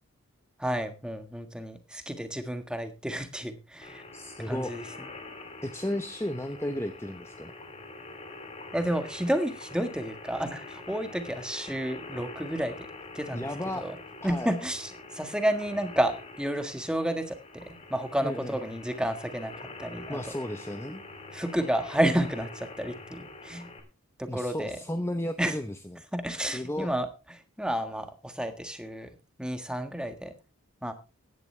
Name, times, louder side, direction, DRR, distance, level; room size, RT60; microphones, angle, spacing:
voice 1, 0.6-4.0 4.5-4.8 8.7-12.9 13.1-13.5 13.7-14.0 14.2-19.5 19.8-20.2 21.3-23.7 24.2-24.8 25.4-25.5 26.1-27.1 27.6-29.1 29.4-30.3 30.8-30.9, right 1 dB, 5° right, 8 dB, 1.5 m, -31 dB
sound 1, 3.8-23.8, left 2 dB, 30° left, 3.0 m, -45 dB
voice 2, 4.1-4.7 5.6-7.5 11.1-11.2 13.3-13.9 14.3-14.5 18.2-18.6 20.1-21.0 24.3-26.0 26.3-26.9, left 1 dB, 10° left, 8 dB, 0.8 m, -34 dB
16.0 x 11.0 x 3.3 m, 0.29 s
head